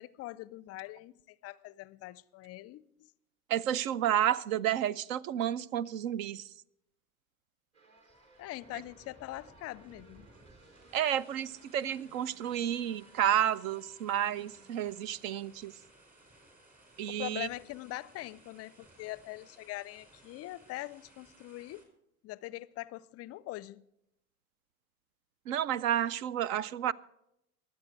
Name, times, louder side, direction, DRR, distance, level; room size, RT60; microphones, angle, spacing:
voice 1, 0.0-3.1 8.4-10.3 17.1-21.8 22.2-23.8, left 17 dB, 35° left, 0.4 m, -43 dB
voice 2, 3.5-6.5 10.9-15.7 17.0-17.5 25.5-26.9, right 10 dB, 70° right, 0.6 m, -31 dB
sound 1, 7.7-15.0, right 1 dB, 40° right, 3.5 m, -61 dB
sound 2, 8.0-21.8, right 2 dB, 20° right, 4.7 m, -60 dB
23.5 x 8.0 x 4.6 m
hypercardioid pair, 80°, 42 cm